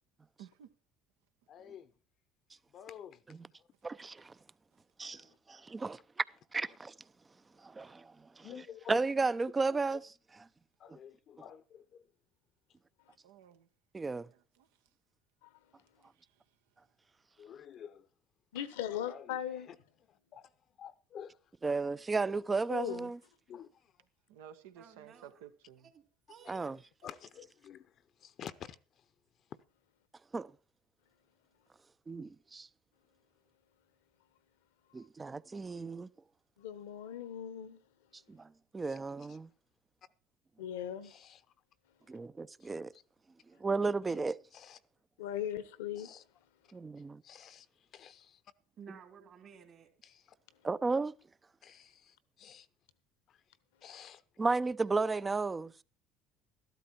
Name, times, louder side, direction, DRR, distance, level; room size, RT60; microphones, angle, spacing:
voice 1, 0.4-0.7 13.2-13.7 14.3-14.7 24.3-25.9, right 9 dB, 80° right, 1.2 m, -54 dB
voice 2, 1.5-1.9 2.7-3.2 3.6-3.7 6.7-6.8 8.4-9.0 10.8-12.1 17.4-18.1 18.5-18.6 18.9-19.4 19.7-19.8 20.1-20.5 20.8-21.4 21.7-21.8 23.5-23.9 26.4-26.5 27.0-29.1 38.9-39.4 41.0-41.4 42.6-43.0 44.5-44.8 46.0-46.2 47.2-48.4 50.0-50.3 51.6-52.7 53.3-53.4 53.8-54.2, left 8 dB, 50° left, 0.8 m, -50 dB
voice 3, 3.8-4.3 5.0-5.2 5.5-6.2 6.5-6.9 7.6-8.5 8.9-10.0 13.9-14.3 21.6-23.2 26.5-26.8 30.3-30.5 32.1-32.7 34.9-36.1 38.3-39.5 42.1-42.9 43.6-44.4 46.7-47.2 50.6-51.1 54.4-55.7, right 3 dB, 25° right, 0.6 m, -33 dB
voice 4, 18.5-19.7 22.7-23.1 36.6-37.8 40.6-41.1 45.2-46.1, left 10 dB, 80° left, 1.2 m, -38 dB
voice 5, 24.7-27.1 48.8-49.9, right 7 dB, 50° right, 3.0 m, -56 dB
13.0 x 12.5 x 4.4 m
hypercardioid pair, 70°, 0 cm